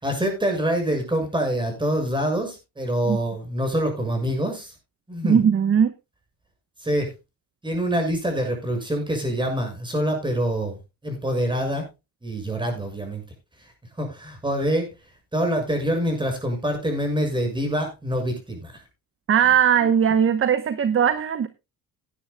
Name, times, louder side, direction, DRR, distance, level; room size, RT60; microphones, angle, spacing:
voice 1, 0.0-4.7 5.1-5.4 6.8-7.1 7.6-10.8 11.0-11.9 12.2-13.2 14.0-14.9 15.3-18.8, equal, 15° right, 4 dB, 6.6 m, -25 dB
voice 2, 5.2-5.9 19.3-21.5, right 8 dB, 35° right, 12 dB, 1.0 m, -19 dB
17.5 x 10.0 x 2.3 m, 0.26 s
cardioid pair, 110°, 36 cm